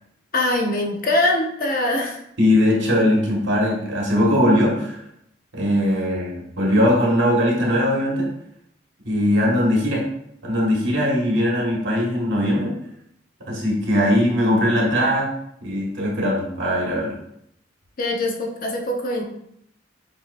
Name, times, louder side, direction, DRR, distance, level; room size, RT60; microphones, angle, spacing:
voice 1, 0.3-2.2 18.0-19.2, left 1 dB, 50° left, 1 dB, 0.7 m, -22 dB
voice 2, 2.4-5.0 5.5-8.3 9.0-10.0 10.4-12.7 13.4-15.3 15.6-17.2, equal, 90° right, -2 dB, 1.4 m, -20 dB
7.0 x 2.8 x 2.5 m, 0.75 s
head